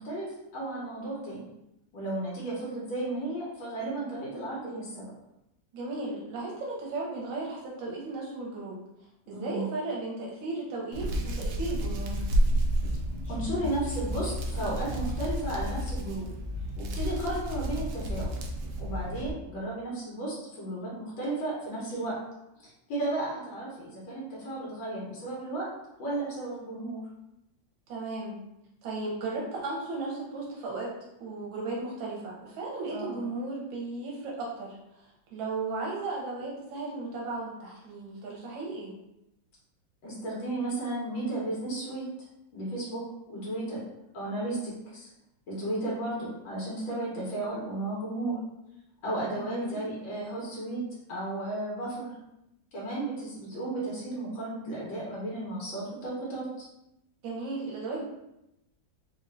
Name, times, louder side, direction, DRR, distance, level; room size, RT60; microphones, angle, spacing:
voice 1, 0.0-1.5 1.9-5.0 9.3-9.7 13.2-16.3 16.8-18.3 18.8-22.2 22.6-25.7 26.0-27.0 32.9-33.2 40.0-42.0 42.5-43.0 43.3-43.8 44.1-45.1 45.5-48.4 49.0-50.8 51.1-52.1 52.7-56.7, right 2 dB, 80° left, -5 dB, 1.8 m, -34 dB
voice 2, 5.7-8.8 9.3-12.2 27.9-28.4 28.8-30.9 31.2-38.9 49.4-49.8 57.2-58.0, right 3 dB, 90° right, -3 dB, 1.5 m, -35 dB
Hands, 10.9-19.3, equal, 70° right, 0.9 m, -30 dB
4.2 x 2.7 x 2.5 m, 0.86 s
omnidirectional pair, 2.1 m